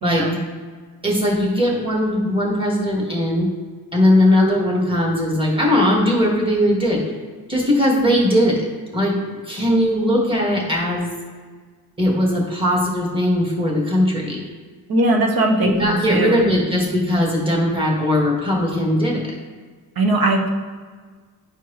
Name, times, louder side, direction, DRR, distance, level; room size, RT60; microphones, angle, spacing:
voice 1, 0.0-0.4 14.9-16.4 20.0-20.5, right 1 dB, 65° right, 2 dB, 1.2 m, -19 dB
voice 2, 1.0-3.5 3.9-7.0 7.5-8.6 8.9-9.2 9.5-11.1 12.0-14.4 15.6-19.2, left 1 dB, 15° right, -2 dB, 1.8 m, -19 dB
11.0 x 4.5 x 3.2 m, 1.5 s
cardioid pair, 105°, 39 cm